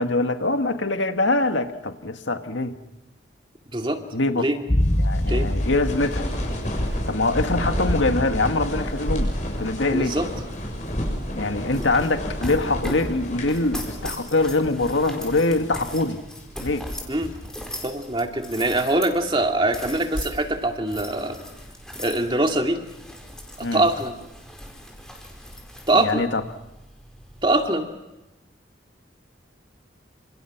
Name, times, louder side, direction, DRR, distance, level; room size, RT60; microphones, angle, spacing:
voice 1, 0.0-2.8 4.1-4.5 5.0-6.3 7.1-10.2 11.4-16.2 16.6-16.9 23.6-23.8 25.9-26.4, left 2 dB, 90° left, 7 dB, 1.9 m, -24 dB
sound 1, 4.7-8.9 9.2-9.3, left 1 dB, 25° left, 1.0 m, -26 dB
sound 2, 4.8-14.4 14.6-14.7 15.3-15.8 16.4-17.5, equal, 40° left, 7.4 m, -30 dB
voice 2, 9.9-10.3 17.1-17.3 17.8-21.4 22.0-22.8 23.6-24.2 25.9-26.3 27.4-27.9, right 2 dB, 25° right, 4 dB, 2.4 m, -23 dB
sound 3, 10.5-27.7, equal, 5° left, 4.5 m, -39 dB
29.5 x 27.5 x 6.0 m, 0.97 s
head